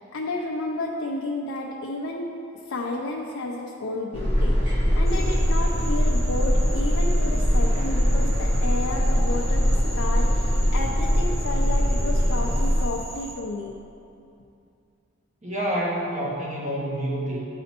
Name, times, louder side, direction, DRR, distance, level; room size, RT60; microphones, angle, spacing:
voice 1, 0.0-2.3 2.7-13.7, left 2 dB, 80° left, -2 dB, 0.5 m, -32 dB
sound 1, 4.1-12.9, equal, 55° right, 1.4 m, -22 dB
Frog, 5.0-13.4, right 1 dB, 15° right, 1.1 m, -41 dB
voice 2, 15.4-17.5, right 1 dB, 35° right, -6 dB, 1.5 m, -28 dB
11.0 x 4.1 x 2.9 m, 2.6 s
head